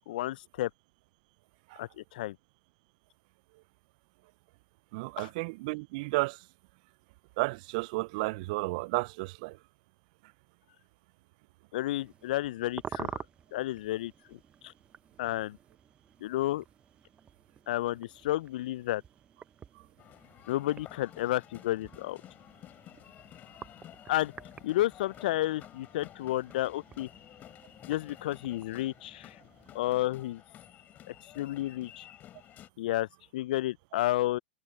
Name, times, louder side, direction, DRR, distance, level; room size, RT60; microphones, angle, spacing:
voice 1, 0.1-0.7 1.8-2.4 5.2-5.3 11.7-13.2 13.5-14.7 15.2-15.6 16.2-16.6 17.7-19.0 20.5-22.2 24.1-24.3 24.6-27.1 27.8-29.3 29.7-30.4 31.1-32.0 32.8-33.1 33.3-34.4, left 15 dB, 60° left, 0.4 m, -31 dB
voice 2, 4.9-6.4 7.4-9.6, right 24 dB, 55° right, 0.5 m, -32 dB
sound 1, 11.9-30.1, right 7 dB, 20° right, 0.9 m, -49 dB
sound 2, 20.0-32.7, left 12 dB, 35° left, 5.2 m, -52 dB
hypercardioid pair, 105°, 5 cm